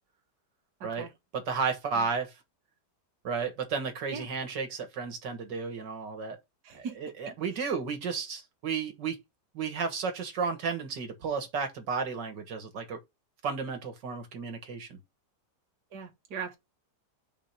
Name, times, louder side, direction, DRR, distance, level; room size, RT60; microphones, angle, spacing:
voice 1, 0.8-1.1 1.9-2.1 4.1-4.3 6.6-7.0 7.3-7.4 15.9-16.6, right 6 dB, 70° right, 2.0 m, -39 dB
voice 2, 1.3-2.3 3.2-6.4 6.7-9.2 9.5-13.0 13.4-15.0, right 5 dB, 85° right, 2.1 m, -33 dB
5.3 x 5.1 x 5.8 m
omnidirectional pair, 1.8 m